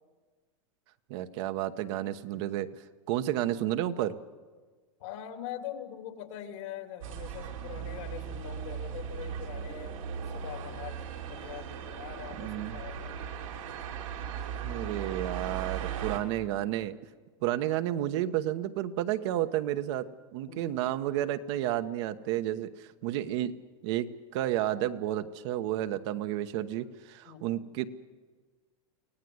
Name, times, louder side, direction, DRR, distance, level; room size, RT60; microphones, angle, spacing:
voice 1, 1.1-2.7 3.1-4.2 12.4-12.8 14.6-17.0 17.4-23.5 23.8-27.9, right 13 dB, 60° right, 9 dB, 1.1 m, -31 dB
voice 2, 5.0-13.1 20.5-20.8 27.2-27.6, left 10 dB, 65° left, 6 dB, 2.9 m, -43 dB
sound 1, 7.0-16.2, right 8 dB, 85° right, 3.4 m, -38 dB
24.5 x 17.0 x 8.0 m, 1.4 s
hypercardioid pair, 125°, 17 cm